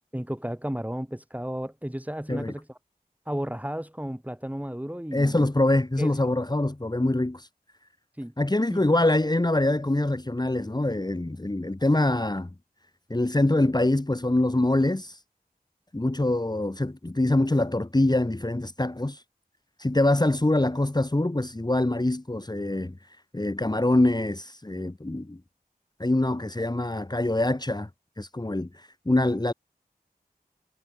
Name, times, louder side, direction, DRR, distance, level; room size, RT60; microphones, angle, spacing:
voice 1, 0.1-2.7 3.3-5.5 6.0-6.3 8.2-8.3 8.7-8.8, equal, 10° right, 3.9 m, -33 dB
voice 2, 5.1-7.5 8.4-12.5 13.1-15.2 15.9-19.2 19.8-22.9 23.3-25.4 26.0-27.9 28.2-29.5, left 1 dB, 25° left, 1.7 m, -24 dB
wide cardioid pair, 50°, 16 cm